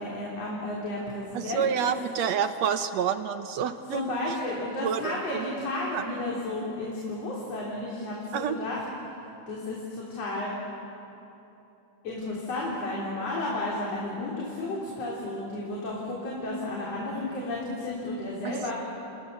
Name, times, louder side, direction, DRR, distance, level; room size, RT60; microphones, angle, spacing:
voice 1, 0.0-1.9 3.9-8.8 9.5-10.5 12.0-18.7, left 2 dB, 50° left, -4 dB, 4.4 m, -32 dB
voice 2, 1.3-4.0 4.8-5.5 5.9-6.0 8.3-8.6 18.4-18.7, right 8 dB, 70° right, 9 dB, 1.7 m, -28 dB
29.0 x 29.0 x 6.8 m, 2.9 s
omnidirectional pair, 3.8 m